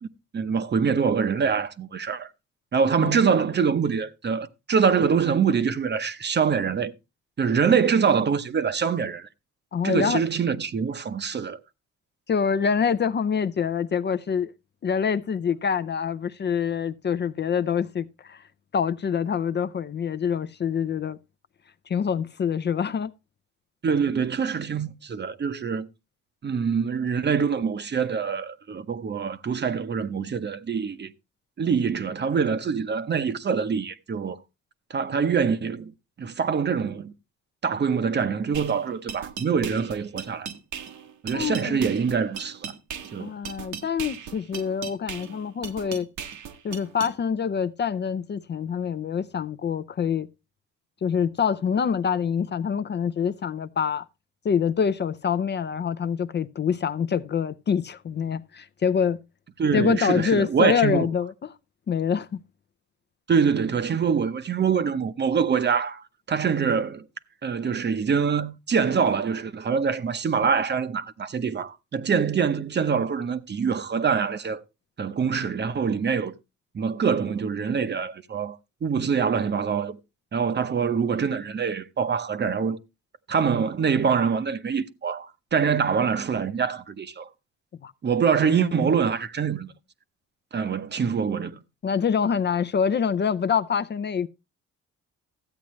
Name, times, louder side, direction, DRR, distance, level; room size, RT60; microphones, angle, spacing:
voice 1, 0.3-2.3 2.7-6.9 7.4-9.3 9.8-11.6 23.8-25.9 26.4-31.1 31.6-34.4 34.9-35.9 36.2-37.1 37.6-40.5 41.2-42.7 43.1-43.3 59.6-61.1 63.3-67.0 67.4-74.6 75.0-76.3 76.7-80.0 80.3-82.8 83.3-87.3 88.0-89.7 90.5-91.6, right 6 dB, 35° right, 0.7 m, -24 dB
voice 2, 9.7-10.2 12.3-14.5 14.8-18.4 18.7-21.2 21.9-23.1 41.3-41.9 43.2-46.1 46.6-50.3 51.0-54.0 54.4-59.2 59.7-61.5 61.9-62.4 87.8-87.9 88.6-88.9 91.8-94.3, left 7 dB, 35° left, 0.5 m, -25 dB
sound 1, 38.5-47.1, right 7 dB, 70° right, 1.1 m, -38 dB
13.5 x 8.4 x 3.1 m
cardioid pair, 90°, 30 cm